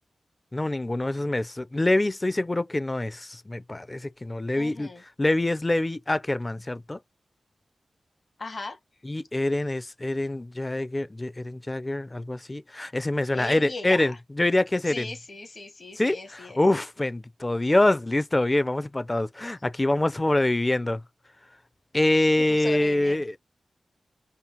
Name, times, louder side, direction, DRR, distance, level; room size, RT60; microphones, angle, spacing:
voice 1, 0.5-4.9 5.2-7.0 9.0-15.1 16.0-21.0 21.9-23.4, left 1 dB, 30° left, 0.5 m, -25 dB
voice 2, 4.5-5.0 8.4-8.8 13.3-14.1 14.9-16.6 22.5-23.2, left 3 dB, 55° left, 1.3 m, -38 dB
5.4 x 2.1 x 2.8 m
cardioid pair, 40°, 0 cm